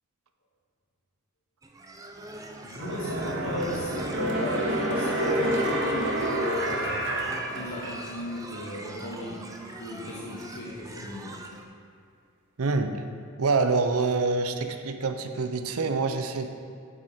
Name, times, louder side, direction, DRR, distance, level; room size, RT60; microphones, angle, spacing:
sound 1, 1.6-11.6, right 2 dB, 15° right, 0.4 m, -43 dB
voice 1, 2.6-7.1 7.5-11.4, left 1 dB, 60° left, -5 dB, 1.0 m, -36 dB
sound 2, 2.7-8.3 8.7-8.8, right 1 dB, 55° right, 1.0 m, -28 dB
voice 2, 12.6-12.9 13.4-16.5, right 4 dB, 85° right, 7 dB, 0.6 m, -26 dB
8.0 x 7.4 x 4.3 m, 2.3 s
head